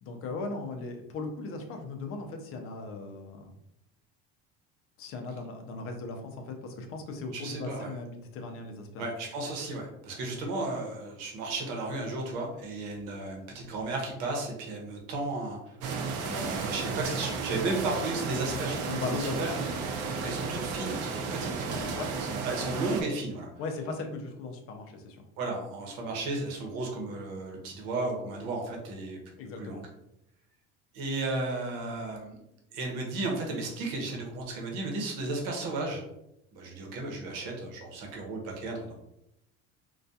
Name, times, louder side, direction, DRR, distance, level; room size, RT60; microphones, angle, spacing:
voice 1, 0.0-3.5 5.0-9.1 18.9-19.8 21.9-22.1 23.6-25.2 29.4-29.8, left 3 dB, 50° left, 4 dB, 0.5 m, -37 dB
voice 2, 7.3-7.9 9.0-15.8 16.2-19.5 20.1-21.8 22.3-23.5 25.4-29.2 29.6-29.8 30.9-32.4 32.7-36.1 36.5-38.9, right 2 dB, 85° right, 1 dB, 0.8 m, -34 dB
sound 1, 15.8-23.0, right 4 dB, 55° right, 0.5 m, -33 dB
2.3 x 2.2 x 2.6 m, 0.82 s
cardioid pair, 145°, 29 cm